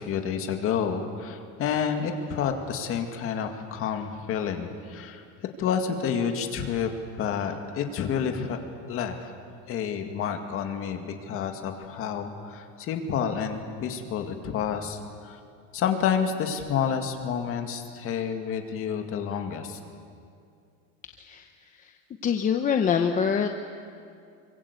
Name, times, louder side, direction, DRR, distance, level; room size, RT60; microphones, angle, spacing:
voice 1, 0.0-5.2 5.6-6.9 7.2-8.6 8.9-9.3 9.7-15.4 15.7-19.8, left 7 dB, 40° left, 5 dB, 2.2 m, -29 dB
voice 2, 22.2-23.5, left 7 dB, 25° left, 5 dB, 0.9 m, -24 dB
26.5 x 24.0 x 8.3 m, 2.4 s
cardioid pair, 180°, 33 cm